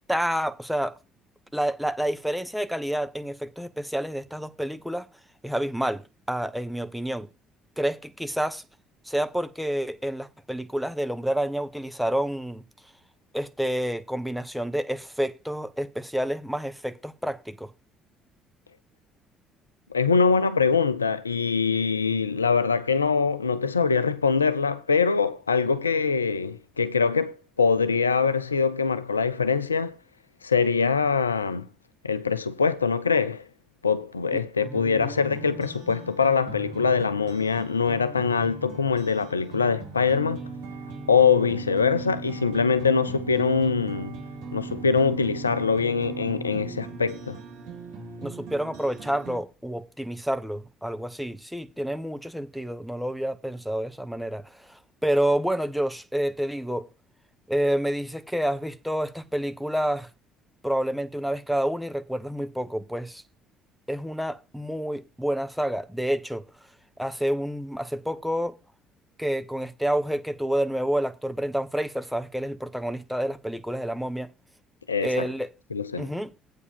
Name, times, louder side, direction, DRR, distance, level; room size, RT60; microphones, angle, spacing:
voice 1, 0.1-1.0 1.5-5.1 5.4-6.0 6.3-7.3 7.8-8.6 9.1-12.6 13.3-17.7 34.3-36.1 48.2-56.9 57.5-60.1 60.6-63.2 63.9-66.4 67.0-68.6 69.2-74.3 75.0-75.5 76.0-76.3, right 1 dB, ahead, 0.9 m, -29 dB
voice 2, 19.9-30.0 30.4-31.7 32.0-33.4 33.8-40.4 41.1-44.2 44.5-47.4 74.9-75.3 75.7-76.1, left 5 dB, 90° left, 0.4 m, -23 dB
sound 1, 34.6-49.4, right 4 dB, 65° right, 3.5 m, -39 dB
8.4 x 4.6 x 7.3 m
figure-of-eight pair, 50°, 0 cm